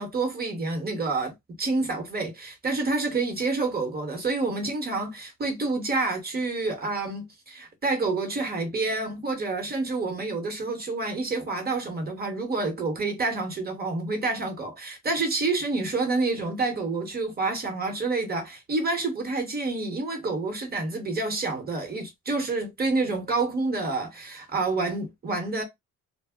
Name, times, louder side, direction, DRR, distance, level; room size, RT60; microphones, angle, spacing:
voice 1, 0.0-1.3 1.6-25.6, right 3 dB, 30° right, 1.2 m, -28 dB
2.3 x 2.1 x 3.6 m
cardioid pair, 90°, 30 cm